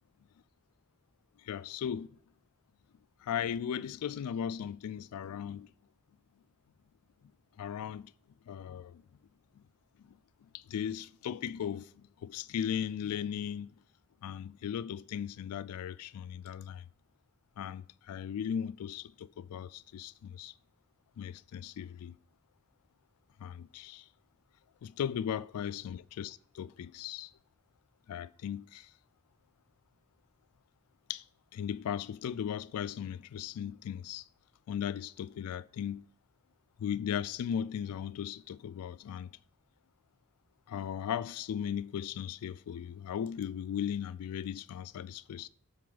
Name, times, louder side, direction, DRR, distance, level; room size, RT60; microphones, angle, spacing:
voice 1, 1.4-2.1 3.2-5.7 7.6-8.1 8.5-9.0 10.0-10.2 10.5-13.7 14.2-16.9 17.6-20.5 21.2-22.1 23.4-24.1 24.8-27.3 28.1-28.9 31.1-31.2 31.5-34.2 34.7-36.1 36.8-39.3 40.7-45.5, left 8 dB, 75° left, 0.3 m, -37 dB
7.6 x 4.3 x 3.9 m
head